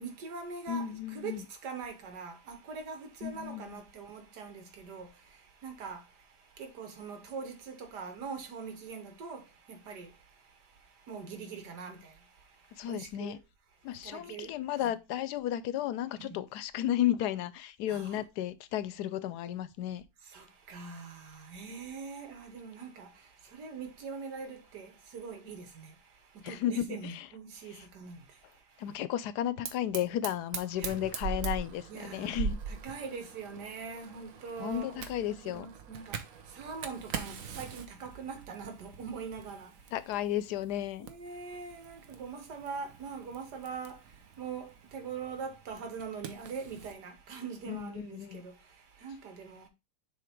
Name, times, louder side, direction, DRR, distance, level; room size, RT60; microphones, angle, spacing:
voice 1, 0.0-13.4 13.9-14.9 16.2-16.4 17.9-18.2 20.2-29.0 30.8-31.0 31.9-32.4 32.7-39.9 41.0-49.7, right 5 dB, 80° right, 1.9 m, -43 dB
voice 2, 0.7-1.5 3.2-3.8 12.8-13.4 13.8-20.0 26.4-27.3 28.8-32.6 34.6-35.7 39.9-41.1 47.7-48.4, left 11 dB, 80° left, 1.1 m, -33 dB
Fire, 29.6-47.0, right 6 dB, 60° right, 1.1 m, -43 dB
7.2 x 3.2 x 4.5 m
omnidirectional pair, 1.8 m